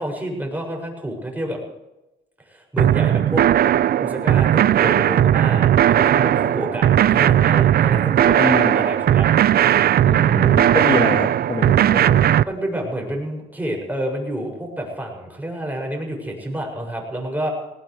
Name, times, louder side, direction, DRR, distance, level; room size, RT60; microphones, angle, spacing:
voice 1, 0.0-1.6 2.4-3.4 4.0-9.3 12.4-17.5, right 1 dB, 10° right, 0 dB, 6.9 m, -28 dB
sound 1, 2.8-12.4, right 11 dB, 50° right, 0.4 m, -17 dB
voice 2, 8.4-8.9 10.0-12.3, left 2 dB, 20° left, 3 dB, 1.6 m, -25 dB
19.5 x 19.0 x 3.4 m, 0.97 s
cardioid pair, 90°, 20 cm